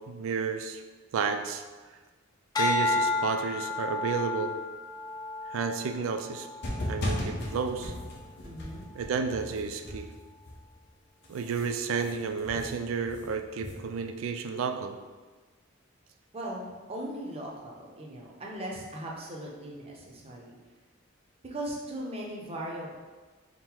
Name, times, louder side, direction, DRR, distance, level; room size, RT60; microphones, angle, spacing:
voice 1, 0.1-0.8 1.1-1.6 2.6-4.6 5.5-6.5 6.9-7.9 8.9-10.1 11.3-14.9, right 5 dB, 85° right, 6 dB, 0.3 m, -31 dB
sound 1, 2.5-7.0 7.6-8.0, left 2 dB, 20° left, 0.3 m, -31 dB
sound 2, 6.6-10.9 11.2-14.1, left 1 dB, 55° left, 0.7 m, -37 dB
voice 2, 8.4-8.9 16.3-20.6 21.4-23.0, right 1 dB, 30° right, -2 dB, 0.6 m, -38 dB
3.7 x 2.1 x 4.3 m, 1.3 s
head